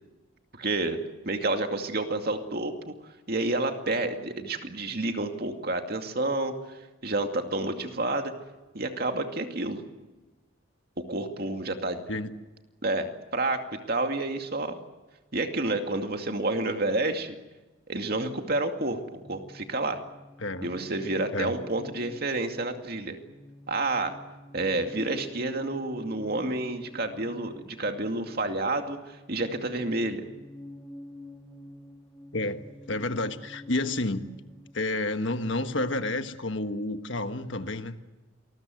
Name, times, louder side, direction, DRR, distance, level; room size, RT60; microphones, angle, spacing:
voice 1, 0.5-2.9 3.3-8.3 8.7-9.8 11.0-12.0 12.8-14.8 15.3-17.4 17.9-19.0 19.3-20.0 20.6-23.2 23.7-24.2 24.5-30.3, right 2 dB, 45° right, 5 dB, 2.4 m, -29 dB
sound 1, 18.0-34.7, left 1 dB, 15° left, 3.9 m, -48 dB
voice 2, 20.4-20.7 21.3-21.5 32.3-34.3 34.7-38.0, left 2 dB, 60° left, 8 dB, 1.5 m, -30 dB
28.0 x 20.5 x 7.9 m, 1.2 s
head